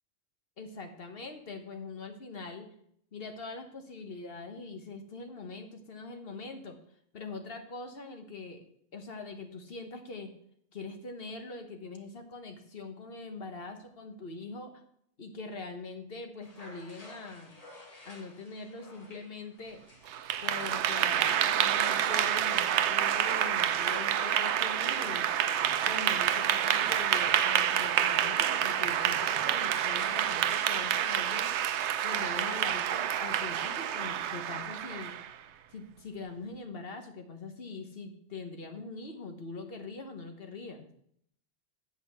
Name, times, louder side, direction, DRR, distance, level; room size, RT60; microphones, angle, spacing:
voice 1, 0.6-2.7 3.1-6.8 7.1-8.6 8.9-10.3 10.7-14.8 15.2-17.5 18.0-19.8 20.4-25.3 25.8-31.5 32.0-35.1 35.7-40.9, left 3 dB, 60° left, 5 dB, 1.4 m, -43 dB
sound 1, 16.4-32.8, left 1 dB, 35° left, 1.5 m, -53 dB
Clapping / Applause, 20.1-35.3, right 10 dB, 85° right, 0.9 m, -28 dB
8.4 x 5.4 x 6.7 m, 0.69 s
omnidirectional pair, 1.1 m